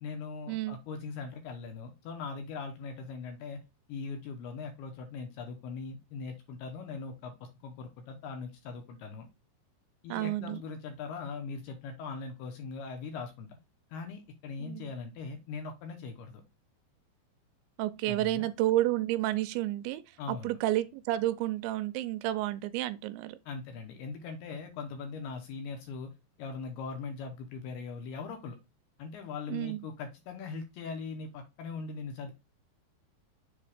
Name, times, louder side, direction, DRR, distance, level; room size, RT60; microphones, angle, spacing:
voice 1, 0.0-3.6 3.9-9.3 10.0-13.6 13.9-16.4 18.1-18.5 20.2-20.6 23.5-26.1 26.4-28.6 29.0-32.3, left 4 dB, 75° left, 2.5 m, -40 dB
voice 2, 10.1-10.6 14.6-14.9 17.8-20.0 20.3-23.4 29.5-29.8, right 15 dB, 85° right, 2.8 m, -30 dB
7.1 x 2.9 x 4.8 m
omnidirectional pair, 5.3 m